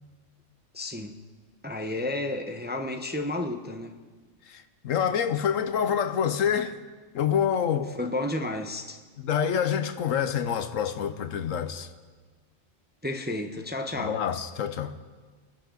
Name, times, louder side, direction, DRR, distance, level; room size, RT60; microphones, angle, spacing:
voice 1, 0.7-1.2 1.6-3.9 8.0-9.0 13.0-14.2, left 1 dB, 10° right, 0.7 m, -32 dB
voice 2, 4.4-6.8 7.1-7.9 9.2-11.9 13.9-14.9, left 8 dB, 75° left, 1.2 m, -27 dB
26.5 x 10.5 x 3.9 m
omnidirectional pair, 1.3 m